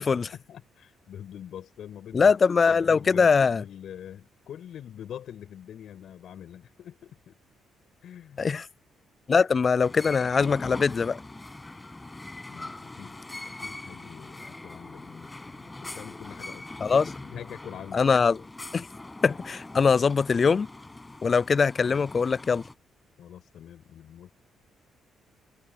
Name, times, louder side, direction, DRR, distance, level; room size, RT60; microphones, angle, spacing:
voice 1, 0.0-2.4 2.7-7.4 8.0-8.4 12.5-13.2 13.6-18.1 23.2-24.3, left 10 dB, 70° left, 7.0 m, -44 dB
voice 2, 2.1-3.6 8.4-8.7 9.3-11.2 16.8-17.1 17.9-18.4 18.7-18.9 19.2-20.7 21.2-22.6, left 5 dB, 40° left, 0.4 m, -22 dB
sound 1, 9.8-22.7, left 2 dB, 15° left, 6.3 m, -42 dB
cardioid pair, 90°, 0 cm